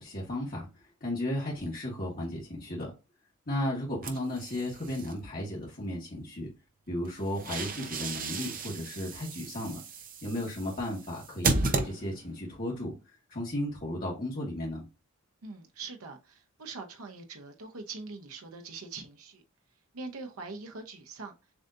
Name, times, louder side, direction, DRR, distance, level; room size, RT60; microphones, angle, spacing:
voice 1, 0.0-2.9 3.5-6.5 6.9-9.8 10.2-14.8, left 1 dB, 40° left, 1.5 m, -34 dB
sound 1, 4.0-5.1 7.1-12.4, right 3 dB, 40° right, 0.7 m, -34 dB
voice 2, 15.4-19.4 19.9-21.3, right 3 dB, 75° right, 0.9 m, -43 dB
7.0 x 2.8 x 2.5 m
head